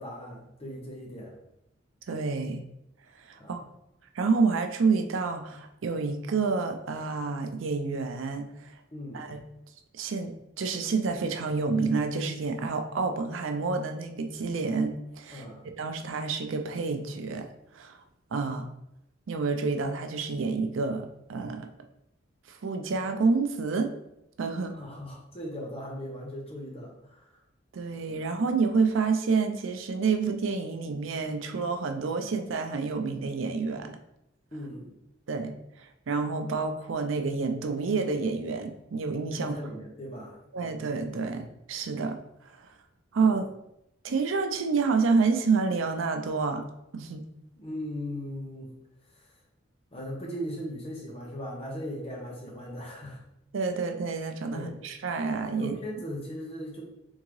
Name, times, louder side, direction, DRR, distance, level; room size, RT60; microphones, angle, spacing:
voice 1, 0.0-1.4 3.3-3.6 8.9-9.3 15.3-15.6 24.7-27.2 34.5-34.9 39.3-40.4 43.2-43.3 47.5-48.7 49.9-53.2 54.5-54.7 55.6-56.8, equal, 30° left, -3 dB, 0.9 m, -38 dB
voice 2, 2.1-2.6 3.2-3.6 4.1-8.8 9.1-9.4 9.9-15.4 15.8-18.0 18.3-18.7 19.3-21.7 22.5-23.9 24.4-24.8 27.7-34.0 35.3-39.6 40.5-42.7 43.1-43.5 44.0-46.6 46.9-47.2 53.5-55.8, right 4 dB, 80° right, 6 dB, 0.5 m, -29 dB
3.6 x 3.6 x 3.1 m, 0.81 s
head